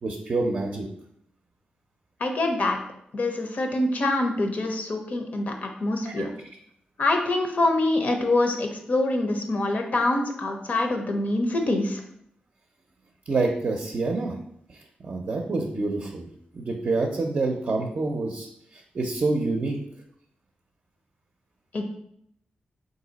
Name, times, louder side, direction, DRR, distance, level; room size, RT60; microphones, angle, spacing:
voice 1, 0.0-0.9 6.0-6.3 13.3-14.4 14.7-16.3 16.5-19.8, right 3 dB, 50° right, 1 dB, 0.5 m, -27 dB
voice 2, 2.2-2.8 3.1-6.3 7.0-12.0 21.7-21.8, left 2 dB, 55° left, 3 dB, 0.7 m, -25 dB
3.9 x 2.7 x 3.9 m, 0.73 s
cardioid pair, 90°, 3 cm